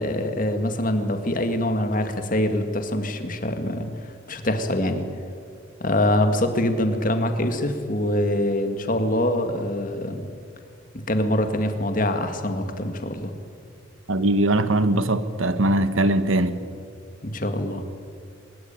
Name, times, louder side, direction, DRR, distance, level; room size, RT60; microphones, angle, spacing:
voice 1, 0.0-3.9 4.3-5.0 5.8-10.3 10.9-13.3 17.2-17.8, left 1 dB, 40° left, 2.1 m, -24 dB
voice 2, 14.1-16.6, right 1 dB, 85° right, 1.5 m, -21 dB
23.5 x 21.5 x 9.1 m
head